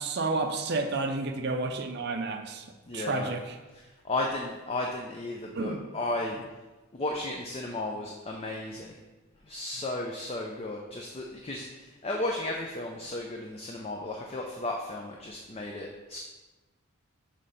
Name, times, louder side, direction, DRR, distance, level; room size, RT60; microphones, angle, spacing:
voice 1, 0.0-2.6 2.9-3.5 5.5-5.8, right 3 dB, 50° right, 5 dB, 0.5 m, -30 dB
voice 2, 2.9-3.3 3.7-6.4 6.9-8.9 9.5-16.2, left 2 dB, 25° left, 1 dB, 0.4 m, -34 dB
6.5 x 3.2 x 5.4 m, 1.2 s
head